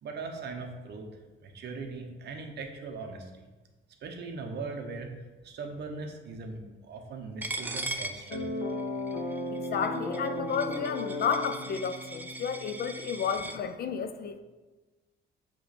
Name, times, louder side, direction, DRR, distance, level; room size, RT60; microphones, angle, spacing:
voice 1, 0.0-1.1 1.4-3.5 4.0-5.1 5.4-8.5, right 4 dB, 55° right, 3 dB, 0.9 m, -40 dB
Coin (dropping), 7.4-13.6, right 2 dB, 10° right, 0.4 m, -39 dB
sound 1, 8.3-13.3, left 1 dB, 70° left, 1.3 m, -36 dB
voice 2, 9.7-14.4, left 6 dB, 50° left, 9 dB, 0.5 m, -32 dB
7.5 x 3.1 x 4.3 m, 1.2 s
cardioid pair, 140°, 20 cm